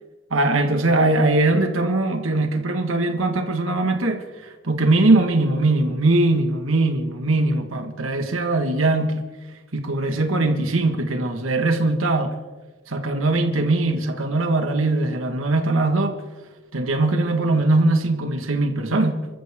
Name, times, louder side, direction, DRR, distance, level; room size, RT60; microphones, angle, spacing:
voice 1, 0.3-9.3 9.7-12.4 12.9-16.2 16.7-19.3, right 2 dB, 85° right, 5 dB, 1.7 m, -21 dB
28.5 x 14.0 x 3.7 m, 1.2 s
head